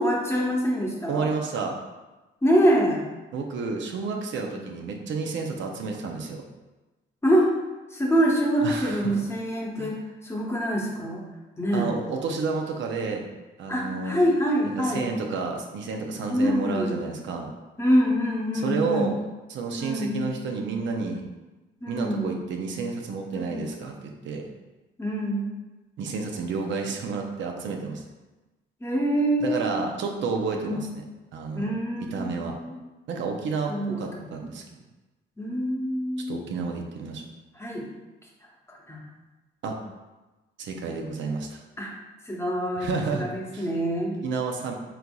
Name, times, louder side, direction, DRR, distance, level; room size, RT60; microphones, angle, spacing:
voice 1, 0.0-1.3 2.4-3.1 7.2-7.5 7.9-10.0 10.2-11.2 11.6-11.9 13.7-15.1 16.3-17.0 17.8-19.1 19.8-20.3 21.8-22.3 23.3-23.6 25.0-25.5 28.8-29.7 30.5-30.9 31.5-32.7 33.7-34.3 35.4-36.3 37.6-37.8 38.7-39.0 41.8-41.9 42.3-44.2, equal, 15° left, -2 dB, 0.9 m, -25 dB
voice 2, 1.1-1.8 3.3-6.4 8.6-9.2 9.8-9.9 11.7-13.2 13.6-14.2 14.8-17.5 18.6-19.2 19.5-21.3 21.9-24.5 26.0-28.0 29.4-31.0 31.3-31.7 32.0-32.6 33.1-33.7 34.0-34.6 36.3-37.2 39.6-39.8 40.6-41.6 42.8-43.3 43.5-43.7 44.2-44.7, right 4 dB, 70° right, 2 dB, 0.6 m, -30 dB
4.4 x 3.8 x 2.3 m, 1.1 s
cardioid pair, 90°, 20 cm